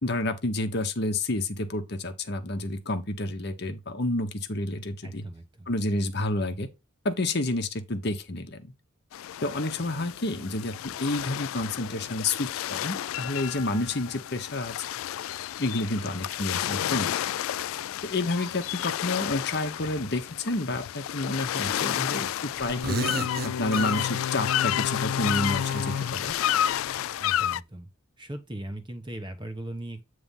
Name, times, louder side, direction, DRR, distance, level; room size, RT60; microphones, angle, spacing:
voice 1, 0.0-5.2 5.7-6.7 7.0-8.7 9.4-14.8 15.6-17.2 18.0-23.1 23.4-26.4, left 2 dB, 55° left, 1.0 m, -29 dB
voice 2, 5.0-5.7 27.2-27.9 28.2-30.0, right 1 dB, 20° right, 1.1 m, -38 dB
sound 1, 9.1-27.6, left 11 dB, 85° left, 0.3 m, -31 dB
sound 2, 21.6-22.3 22.6-24.6 25.6-27.1, right 4 dB, 45° right, 0.7 m, -37 dB
8.7 x 3.3 x 5.4 m
head